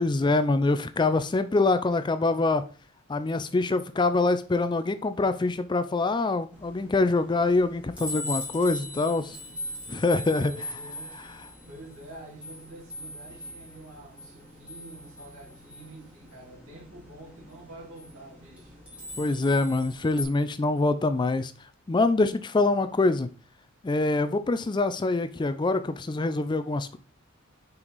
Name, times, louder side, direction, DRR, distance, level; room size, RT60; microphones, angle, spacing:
voice 1, 0.0-2.6 3.1-9.2 9.9-10.5 19.2-21.5 21.9-23.3 23.8-27.0, left 3 dB, 20° left, 0.4 m, -25 dB
sound 1, 6.5-20.2, left 1 dB, 5° right, 2.4 m, -41 dB
voice 2, 8.6-9.6 10.4-11.2 11.7-18.8, right 1 dB, 75° right, 2.8 m, -48 dB
5.7 x 5.3 x 4.0 m
head